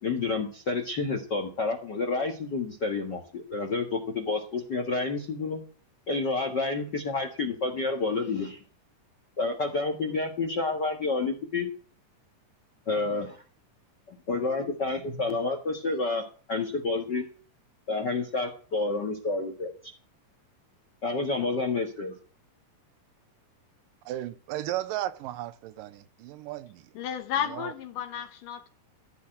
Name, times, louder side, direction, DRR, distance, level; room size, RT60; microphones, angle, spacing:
voice 1, 0.0-5.6 6.1-8.6 9.4-11.7 12.9-13.4 14.1-16.2 16.5-17.2 17.9-19.9 21.0-22.1, left 3 dB, 40° left, 1.7 m, -29 dB
voice 2, 24.1-26.9 27.4-27.7, right 14 dB, 90° right, 2.5 m, -35 dB
voice 3, 27.0-28.7, left 9 dB, 75° left, 2.6 m, -32 dB
14.5 x 5.6 x 9.0 m
omnidirectional pair, 3.9 m